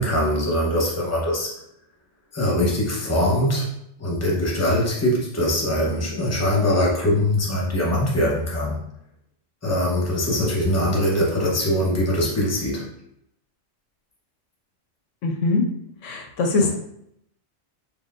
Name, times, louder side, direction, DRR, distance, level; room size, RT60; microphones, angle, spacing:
voice 1, 0.0-1.5 2.3-3.7 4.0-8.8 9.6-12.9, left 1 dB, 15° left, -3 dB, 0.9 m, -22 dB
voice 2, 15.2-15.6 16.0-16.8, left 3 dB, 80° left, 3 dB, 1.0 m, -22 dB
4.1 x 3.3 x 2.5 m, 0.75 s
omnidirectional pair, 1.3 m